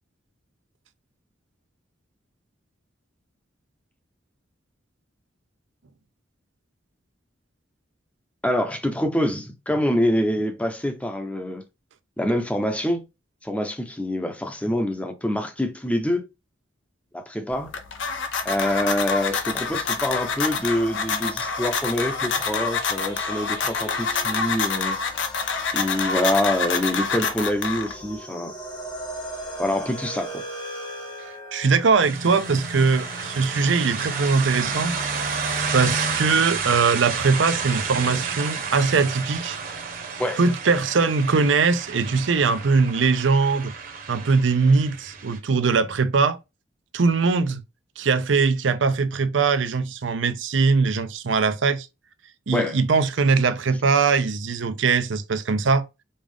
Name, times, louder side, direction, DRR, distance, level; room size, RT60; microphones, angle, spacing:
voice 1, 8.4-11.6 12.2-13.1 13.4-16.3 17.1-17.7 18.4-25.0 25.7-28.5 29.6-30.4 40.2-40.4 52.5-52.8, left 1 dB, 5° left, 0.7 m, -25 dB
sound 1, 17.5-28.2, left 5 dB, 75° left, 0.7 m, -27 dB
sound 2, 19.1-35.6, equal, 25° left, 1.0 m, -40 dB
voice 2, 31.5-35.0 35.7-39.6 40.4-43.7 44.1-46.4 46.9-47.6 48.0-51.9 52.5-55.8, right 4 dB, 75° right, 0.6 m, -21 dB
sound 3, 32.0-45.4, right 5 dB, 50° right, 1.0 m, -30 dB
5.3 x 2.4 x 3.5 m
head